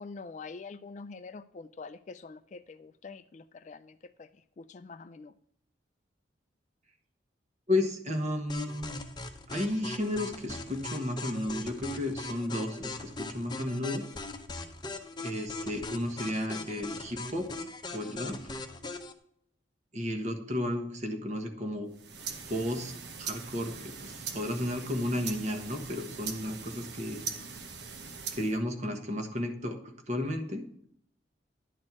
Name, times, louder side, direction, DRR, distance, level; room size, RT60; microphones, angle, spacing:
voice 1, 0.0-4.3 4.6-5.3, left 4 dB, 40° left, 14 dB, 0.3 m, -45 dB
voice 2, 7.7-9.0 9.5-14.0 15.2-17.5 17.9-18.5 19.9-21.9 22.5-22.9 23.2-27.2 28.3-30.6, left 1 dB, 40° right, 4 dB, 1.3 m, -33 dB
sound 1, 8.5-19.1, left 3 dB, 25° left, 0.8 m, -40 dB
sound 2, 21.9-28.6, right 6 dB, 60° right, 1.0 m, -41 dB
11.0 x 4.3 x 5.9 m, 0.67 s
head